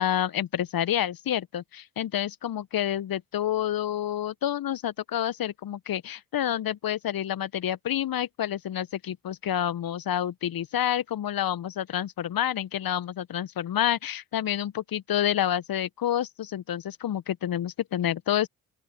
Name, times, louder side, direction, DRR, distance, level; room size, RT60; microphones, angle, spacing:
voice 1, 0.0-18.5, left 11 dB, 50° left, 1.4 m, -28 dB
open air
figure-of-eight pair, 40°, 46 cm